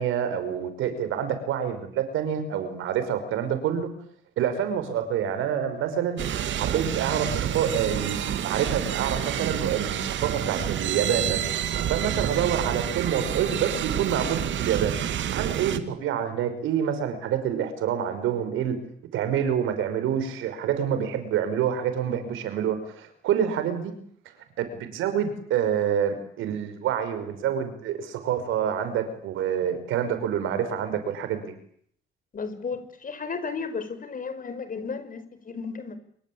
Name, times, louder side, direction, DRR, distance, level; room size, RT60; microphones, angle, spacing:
voice 1, 0.0-3.9 4.4-6.2 6.6-11.4 11.9-15.0 15.3-18.8 19.1-23.9 24.3-31.4, right 8 dB, 90° right, 9 dB, 5.6 m, -27 dB
sound 1, 6.2-15.8, right 10 dB, 70° right, 2.3 m, -28 dB
voice 2, 32.3-36.0, left 5 dB, 45° left, 11 dB, 5.5 m, -34 dB
27.5 x 24.5 x 8.9 m, 0.64 s
cardioid pair, 90°, 20 cm